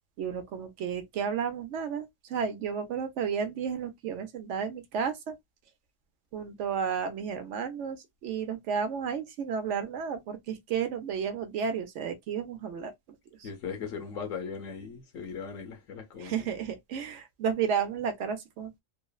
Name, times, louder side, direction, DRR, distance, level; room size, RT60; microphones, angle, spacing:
voice 1, 0.2-5.3 6.3-12.9 13.4-13.5 16.2-18.8, right 7 dB, 70° right, 0.8 m, -32 dB
voice 2, 13.4-16.3, left 6 dB, 75° left, 1.2 m, -38 dB
3.0 x 2.0 x 2.3 m
omnidirectional pair, 1.4 m